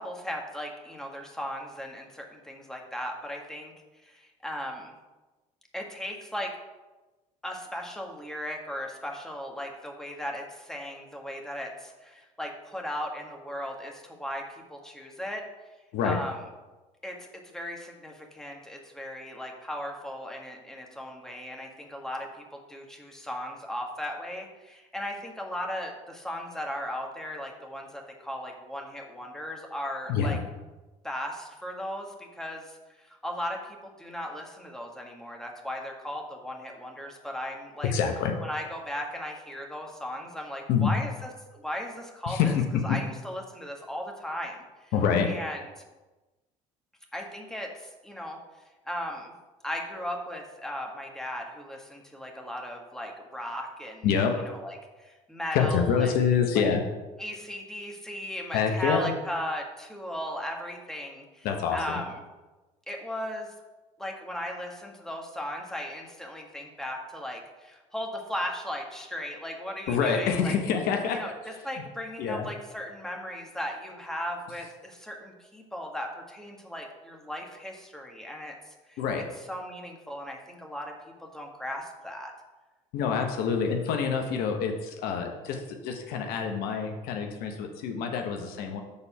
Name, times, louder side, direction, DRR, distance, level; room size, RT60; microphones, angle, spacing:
voice 1, 0.0-3.7 4.0-4.9 5.7-6.5 7.4-14.4 14.7-15.4 16.0-16.3 17.0-17.3 17.5-30.4 31.0-37.9 38.4-42.4 42.8-44.9 45.3-45.6 47.1-48.4 48.8-49.3 49.6-54.1 54.6-56.1 56.6-56.7 57.2-61.5 61.7-62.1 62.9-63.5 64.0-70.6 71.1-71.3 71.6-79.0 79.5-80.9 81.2-82.3, equal, 5° left, 0 dB, 1.6 m, -37 dB
voice 2, 30.1-30.4 37.8-38.3 40.7-40.9 42.3-43.0 44.9-45.3 54.0-54.4 55.5-56.8 58.5-59.1 61.4-62.0 69.9-71.2 71.8-71.9 72.2-72.5 79.0-79.3 82.9-88.8, left 6 dB, 65° left, 4 dB, 0.9 m, -26 dB
6.9 x 4.2 x 5.6 m, 1.2 s
hypercardioid pair, 70°, 17 cm